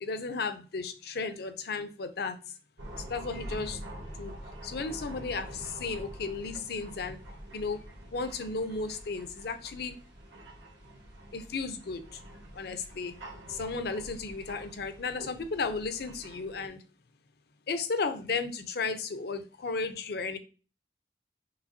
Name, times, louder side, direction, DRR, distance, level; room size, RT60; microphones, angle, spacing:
voice 1, 0.0-2.4 3.1-3.8 4.2-4.3 4.6-7.2 7.5-7.8 8.1-10.0 11.3-12.0 12.5-13.1 13.5-16.8 17.7-20.4, left 4 dB, 60° left, 0.6 m, -34 dB
sound 1, 2.8-16.7, right 1 dB, 90° right, 1.3 m, -46 dB
6.1 x 3.1 x 2.6 m
head